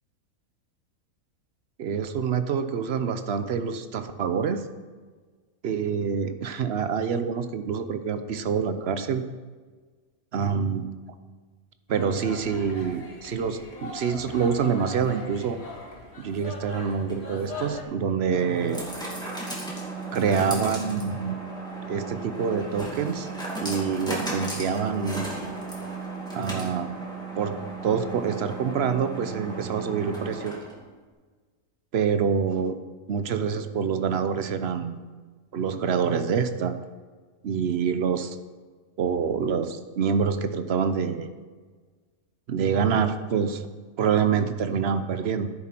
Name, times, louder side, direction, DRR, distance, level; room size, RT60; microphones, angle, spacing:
voice 1, 1.8-4.6 5.6-9.2 10.3-10.9 11.9-15.6 16.2-18.9 20.1-21.4 21.9-23.3 23.6-25.3 26.3-26.9 27.4-30.5 31.9-32.8 33.1-35.0 35.5-36.7 37.4-38.4 39.0-41.3 42.5-43.6 44.0-45.5, right 6 dB, 55° right, 10 dB, 0.8 m, -26 dB
sound 1, 11.9-17.8, left 2 dB, 45° left, 2.0 m, -40 dB
sound 2, 16.9-30.9, right 2 dB, 5° left, 2.4 m, -35 dB
11.5 x 10.0 x 4.5 m, 1.4 s
omnidirectional pair, 1.5 m